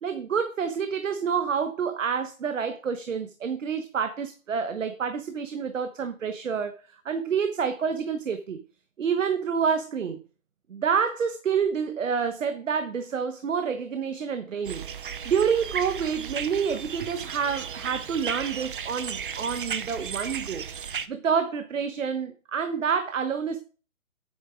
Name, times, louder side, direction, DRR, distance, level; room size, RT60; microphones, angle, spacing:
voice 1, 0.0-8.6 9.0-10.2 10.7-14.8 15.2-20.7 21.1-23.6, right 6 dB, 65° right, 1.2 m, -28 dB
sound 1, 14.6-21.1, right 7 dB, 40° right, 0.7 m, -35 dB
8.7 x 6.5 x 5.0 m
hypercardioid pair, 155°, 41 cm